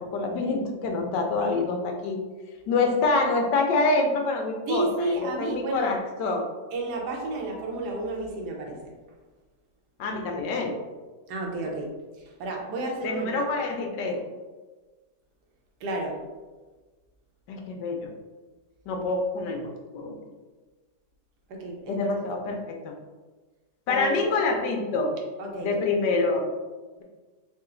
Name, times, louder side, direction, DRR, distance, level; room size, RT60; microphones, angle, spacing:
voice 1, 0.0-2.2 2.7-6.4 10.0-10.8 13.0-14.2 17.5-18.1 18.9-20.2 21.9-22.9 23.9-25.1 25.6-26.4, left 3 dB, 85° left, 3 dB, 1.3 m, -26 dB
voice 2, 4.7-5.9 6.7-8.9 11.3-11.9 12.1-13.4 15.8-16.2 21.5-22.2 23.9-24.3 25.4-25.8, right 2 dB, 75° right, 0 dB, 1.3 m, -31 dB
3.8 x 2.4 x 3.7 m, 1.3 s
omnidirectional pair, 1.8 m